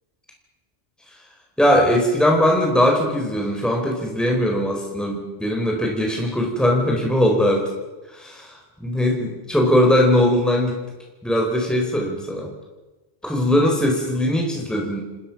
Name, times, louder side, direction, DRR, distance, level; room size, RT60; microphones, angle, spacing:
voice 1, 1.6-7.6 8.1-10.7 11.2-12.5 13.2-15.0, left 1 dB, ahead, 0 dB, 4.3 m, -20 dB
29.0 x 19.5 x 6.0 m, 1.2 s
omnidirectional pair, 1.3 m